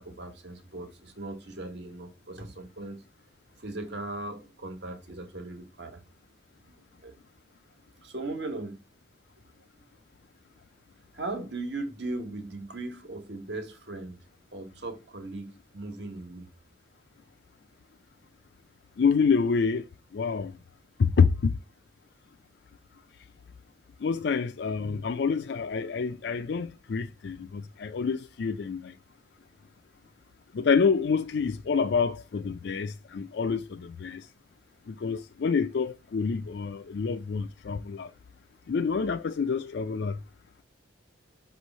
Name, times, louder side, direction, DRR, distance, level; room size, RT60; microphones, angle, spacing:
voice 1, 0.0-3.0 3.6-6.0 6.7-6.8 7.0-7.1 8.0-8.8 9.7-9.9 11.1-14.2 14.5-16.5, right 2 dB, 65° right, 1.4 m, -38 dB
voice 2, 19.0-19.9 20.1-20.5 21.0-21.5 24.0-28.9 30.5-34.3 34.9-38.1 38.7-40.2, left 5 dB, 65° left, 0.4 m, -27 dB
6.0 x 3.1 x 5.3 m
head